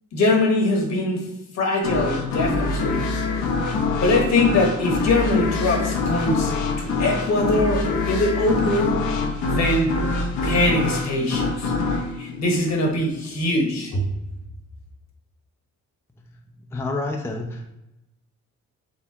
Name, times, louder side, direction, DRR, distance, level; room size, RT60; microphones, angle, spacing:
voice 1, 0.1-1.2 1.5-3.1 4.0-9.1 9.4-9.9 10.4-14.0, left 2 dB, 60° left, 2 dB, 1.2 m, -22 dB
sound 1, 1.8-13.3, left 3 dB, 85° left, 0.8 m, -25 dB
voice 2, 16.7-17.7, left 2 dB, 10° left, 2 dB, 0.4 m, -28 dB
4.6 x 3.4 x 2.8 m, 0.90 s
cardioid pair, 90°, 30 cm